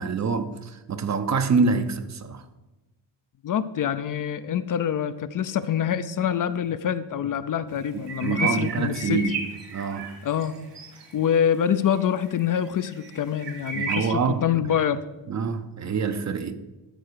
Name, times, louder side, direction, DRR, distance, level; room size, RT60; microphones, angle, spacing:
voice 1, 0.0-2.4 7.9-9.3 9.7-10.1 13.7-14.5 15.3-16.6, right 5 dB, 40° right, 0.7 m, -26 dB
voice 2, 3.4-9.2 10.2-10.5 11.1-15.0, left 9 dB, 45° left, 0.5 m, -25 dB
sound 1, 8.0-10.5 10.7-11.2 11.9-12.0 12.3-12.5 13.0-14.1, right 4 dB, 70° right, 2.9 m, -32 dB
13.0 x 4.7 x 6.7 m
cardioid pair, 150°, 44 cm